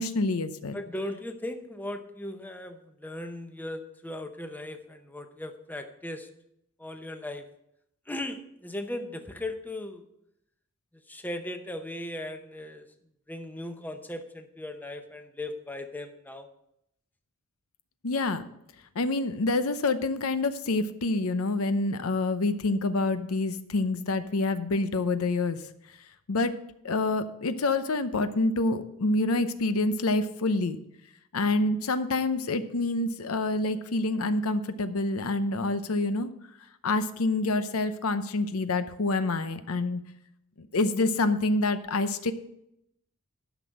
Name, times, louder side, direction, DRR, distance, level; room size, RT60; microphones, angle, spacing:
voice 1, 0.0-0.8 18.0-18.4 18.9-25.6 26.3-26.5 26.8-30.8 31.3-36.3 36.8-40.0 40.6-42.3, left 2 dB, 80° left, 11 dB, 0.7 m, -27 dB
voice 2, 0.7-6.3 6.8-7.5 8.1-10.0 11.1-12.9 13.3-16.5, left 1 dB, 10° left, 6 dB, 0.7 m, -37 dB
11.5 x 6.0 x 6.3 m, 0.79 s
head